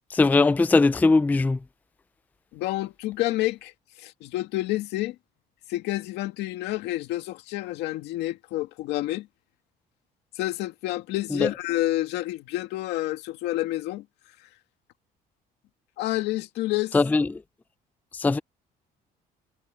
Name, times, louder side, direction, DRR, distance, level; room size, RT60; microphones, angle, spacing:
voice 1, 0.1-1.6 11.4-11.5 16.9-17.2 18.2-18.4, left 3 dB, 10° left, 0.3 m, -20 dB
voice 2, 2.5-3.7 4.0-5.2 5.7-9.3 10.4-14.0 16.0-16.9, left 17 dB, 90° left, 2.1 m, -29 dB
cardioid pair, 110°, 17 cm